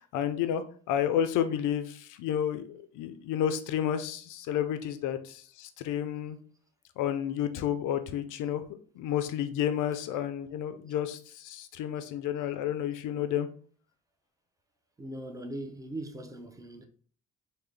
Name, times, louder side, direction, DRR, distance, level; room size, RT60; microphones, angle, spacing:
voice 1, 0.0-6.4 7.0-13.5, left 10 dB, 90° left, 0.5 m, -31 dB
voice 2, 15.0-16.9, right 1 dB, 10° right, 0.5 m, -40 dB
3.7 x 2.1 x 3.2 m
cardioid pair, 90°, 30 cm